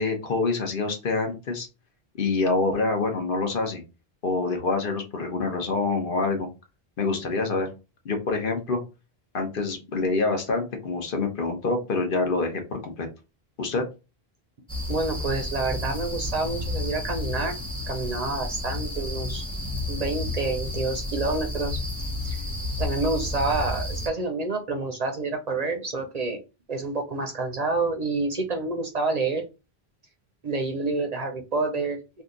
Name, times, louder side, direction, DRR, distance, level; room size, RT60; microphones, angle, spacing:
voice 1, 0.0-1.7 2.2-3.8 4.2-6.5 7.0-7.7 8.0-8.8 9.3-13.1 13.6-13.8, left 3 dB, 60° left, 4 dB, 1.0 m, -26 dB
sound 1, 14.7-24.1, left 1 dB, 5° left, 0.5 m, -31 dB
voice 2, 14.9-17.6 17.9-19.4 19.9-21.8 22.2-22.4 22.8-26.4 26.7-29.4 30.4-32.2, right 3 dB, 45° right, 3 dB, 0.6 m, -28 dB
2.8 x 2.4 x 3.7 m, 0.29 s
omnidirectional pair, 1.0 m